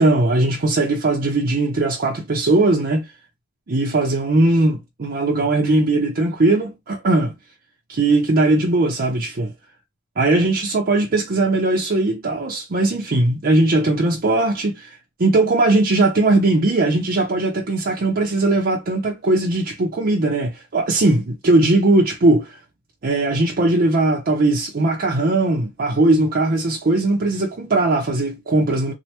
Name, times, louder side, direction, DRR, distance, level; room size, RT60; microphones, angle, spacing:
voice 1, 0.0-3.1 3.7-7.3 7.9-9.5 10.2-22.6 23.0-28.9, right 2 dB, 45° right, 0.6 m, -19 dB
3.2 x 2.1 x 2.9 m
head